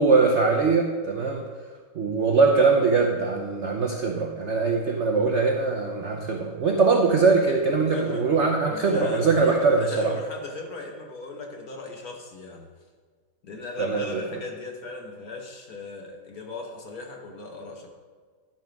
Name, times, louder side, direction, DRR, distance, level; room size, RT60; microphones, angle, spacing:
voice 1, 0.0-1.4 2.0-10.1 13.8-14.2, right 4 dB, 85° right, 2 dB, 0.6 m, -22 dB
voice 2, 7.9-8.3 8.7-12.7 13.4-17.9, left 3 dB, 50° left, 1 dB, 1.4 m, -37 dB
11.5 x 5.5 x 5.2 m, 1.5 s
omnidirectional pair, 2.3 m